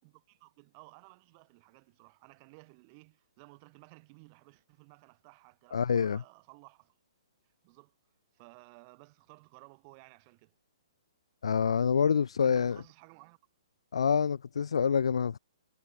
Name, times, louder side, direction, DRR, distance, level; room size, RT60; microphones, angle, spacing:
voice 1, 0.0-6.9 7.6-7.9 8.3-10.5 12.4-13.4, right 32 dB, 25° right, 7.4 m, -56 dB
voice 2, 5.7-6.2 11.4-12.8 13.9-15.4, left 7 dB, 75° left, 1.3 m, -27 dB
hypercardioid pair, 165°, 3 cm